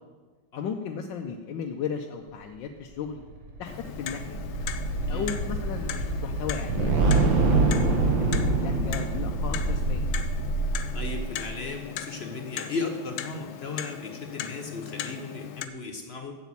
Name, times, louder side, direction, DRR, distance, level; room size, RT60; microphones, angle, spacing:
voice 1, 0.6-3.2 3.6-4.5 5.1-10.1, left 6 dB, 70° left, 3 dB, 1.3 m, -35 dB
sound 1, 3.2-11.6, right 3 dB, 70° right, 2.2 m, -25 dB
Clock, 3.6-15.7, left 10 dB, 90° left, 1.5 m, -38 dB
voice 2, 10.9-16.3, left 3 dB, 55° left, 4 dB, 0.7 m, -35 dB
8.2 x 7.1 x 8.4 m, 1.4 s
omnidirectional pair, 2.2 m